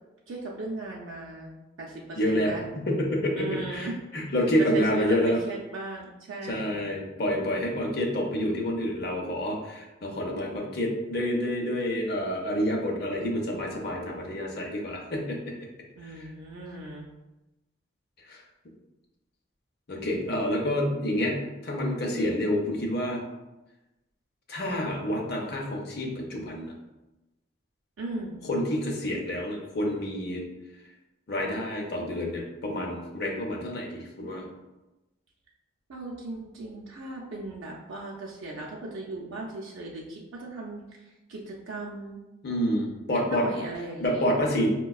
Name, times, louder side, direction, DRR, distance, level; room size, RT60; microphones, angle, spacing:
voice 1, 0.3-1.5 1.8-2.6 3.4-3.9 4.6-6.8 16.0-17.1 28.0-28.5 35.9-42.2 43.1-44.4, right 2 dB, 85° right, -3 dB, 0.5 m, -37 dB
voice 2, 2.2-5.4 6.5-15.5 18.3-18.4 19.9-23.2 24.5-26.7 28.4-30.4 31.3-34.4 42.4-43.5 44.0-44.7, equal, 55° left, 0 dB, 0.6 m, -28 dB
4.6 x 2.2 x 2.3 m, 1.0 s
head